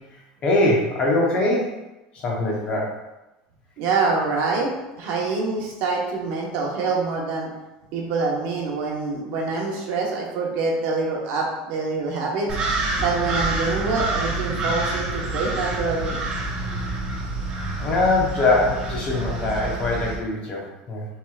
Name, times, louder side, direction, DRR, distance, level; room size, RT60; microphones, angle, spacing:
voice 1, 0.4-1.7 2.1-2.9 17.8-21.1, left 2 dB, 30° left, -2 dB, 0.9 m, -22 dB
voice 2, 3.8-4.7 5.0-7.5 7.9-12.5 13.0-16.2, right 4 dB, 60° right, -1 dB, 1.1 m, -25 dB
sound 1, 12.5-20.2, right 2 dB, 30° right, 0.9 m, -27 dB
6.1 x 3.3 x 2.4 m, 1.0 s
cardioid pair, 170°, 4 cm